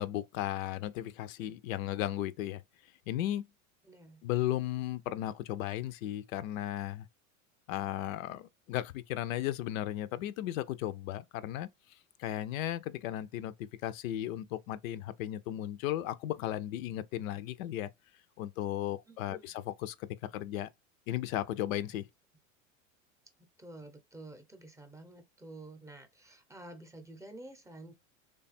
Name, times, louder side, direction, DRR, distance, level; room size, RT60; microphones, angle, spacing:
voice 1, 0.0-2.6 3.1-3.5 4.2-7.1 7.7-11.7 12.2-17.9 18.4-20.7 21.1-22.1, left 13 dB, 80° left, 0.5 m, -35 dB
voice 2, 3.8-4.3 19.1-19.5 23.6-27.9, right 2 dB, 10° right, 0.6 m, -50 dB
3.2 x 2.3 x 4.1 m
supercardioid pair, 115°, 40 cm